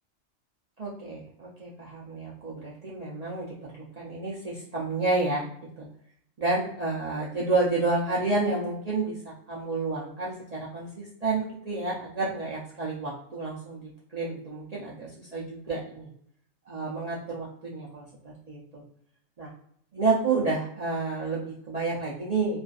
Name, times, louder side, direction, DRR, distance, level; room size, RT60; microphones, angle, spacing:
voice 1, 0.8-5.5 5.8-5.9 6.4-9.2 9.5-16.1 16.7-18.0 18.5-18.8 19.4-19.5 19.9-22.6, right 3 dB, 60° right, -6 dB, 0.4 m, -30 dB
2.4 x 2.4 x 2.3 m, 0.66 s
omnidirectional pair, 1.3 m